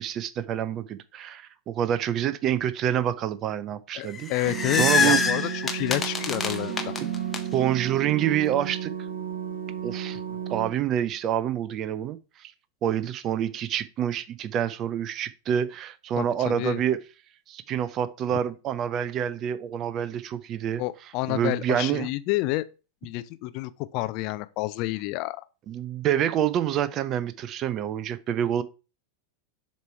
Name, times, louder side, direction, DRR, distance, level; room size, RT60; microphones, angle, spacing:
voice 1, 0.0-4.5 4.8-5.2 7.0-7.1 7.5-8.9 9.8-10.2 10.5-12.5 12.8-17.0 17.5-20.8 21.3-22.1 25.7-28.6, right 10 dB, 35° right, 0.5 m, -27 dB
voice 2, 4.0-6.9 16.2-16.8 20.8-22.6 23.0-25.4, left 18 dB, 45° left, 0.4 m, -29 dB
sound 1, 4.1-7.4, left 5 dB, 15° left, 0.8 m, -25 dB
sound 2, 4.4-10.7, right 9 dB, 70° right, 1.7 m, -33 dB
6.7 x 3.1 x 4.5 m
figure-of-eight pair, 90°, 0 cm